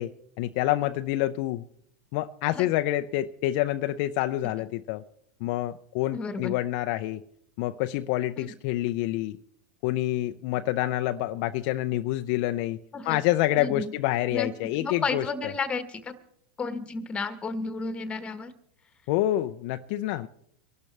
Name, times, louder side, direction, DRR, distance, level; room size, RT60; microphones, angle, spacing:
voice 1, 0.0-1.6 2.1-5.0 5.4-7.2 7.6-9.4 9.8-12.8 13.0-15.5 19.1-20.3, left 15 dB, 55° left, 0.5 m, -27 dB
voice 2, 6.1-6.5 8.4-8.5 12.9-13.2 13.6-13.9 14.3-14.5 14.8-16.1 16.6-18.5, left 4 dB, 20° left, 1.3 m, -32 dB
24.5 x 12.0 x 3.3 m
hypercardioid pair, 120°, 6 cm